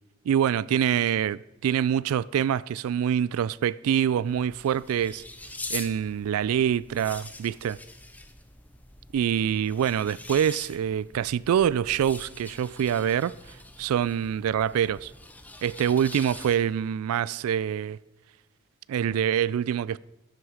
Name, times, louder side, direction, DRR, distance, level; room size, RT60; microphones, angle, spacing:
voice 1, 0.3-5.2 5.7-7.8 9.1-13.3 13.8-15.1 15.6-18.0 18.9-20.0, right 9 dB, 90° right, 0.3 m, -25 dB
sound 1, 4.2-16.9, left 2 dB, 10° left, 0.6 m, -44 dB
12.0 x 7.9 x 4.9 m
head